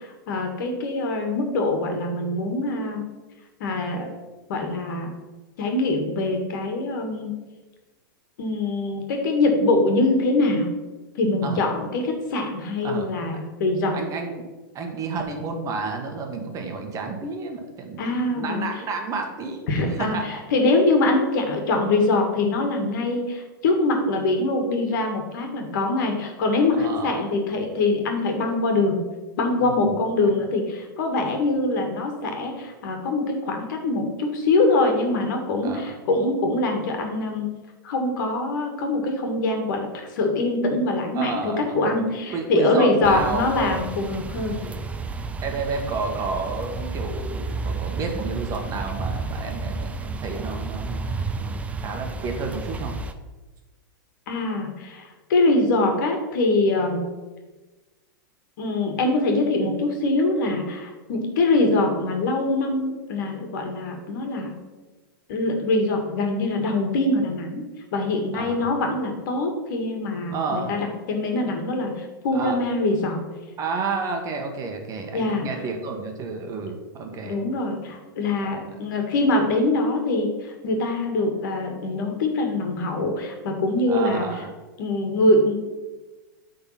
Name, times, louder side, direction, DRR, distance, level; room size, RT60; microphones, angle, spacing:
voice 1, 0.0-3.0 3.6-4.1 4.5-5.1 5.6-7.3 8.4-10.7 11.2-14.0 18.0-18.7 19.7-29.0 29.4-37.5 37.8-39.9 40.1-44.6 54.3-57.1 58.6-64.5 65.3-67.6 67.9-73.2 75.1-75.5 77.2-84.3 84.8-85.5, left 2 dB, 65° left, 3 dB, 1.9 m, -23 dB
voice 2, 13.9-14.4 14.7-19.7 20.0-20.2 26.8-27.2 29.6-30.0 35.6-35.9 41.1-41.8 42.3-43.8 44.6-44.8 45.4-52.9 68.3-68.7 70.3-70.7 72.3-72.6 73.6-77.4 83.9-84.5, right 4 dB, 30° right, 3 dB, 1.3 m, -30 dB
sound 1, 43.0-53.1, right 3 dB, 10° right, 0.5 m, -31 dB
8.7 x 3.9 x 5.8 m, 1.2 s
hypercardioid pair, 125°, 11 cm